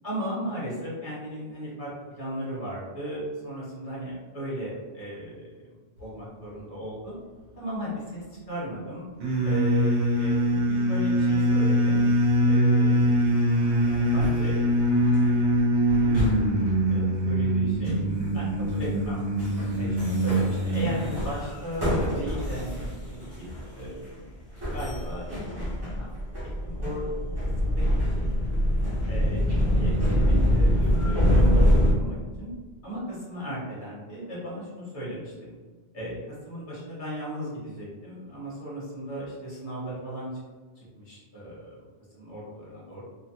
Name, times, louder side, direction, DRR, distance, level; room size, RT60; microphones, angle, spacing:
voice 1, 0.0-5.4 5.7-7.1 7.6-9.0 9.4-12.0 12.4-13.2 13.8-15.6 15.9-19.2 19.8-23.5 23.8-24.4 24.7-25.7 26.0-26.1 26.6-27.2 27.6-27.8 28.1-28.2 29.1-29.4 29.7-32.5 32.8-35.5 35.9-36.2 36.4-40.3 40.8-41.7 42.1-43.0, equal, 50° left, -7 dB, 1.2 m, -36 dB
sound 1, 9.2-21.1, equal, 80° right, 1.0 m, -23 dB
sound 2, 13.6-14.4 14.8-15.2 15.9-16.7 17.9-18.1 18.5-19.1 19.4-19.7 20.0-24.1 24.6-31.9, equal, 25° right, 0.6 m, -25 dB
3.0 x 2.1 x 2.8 m, 1.4 s
omnidirectional pair, 1.1 m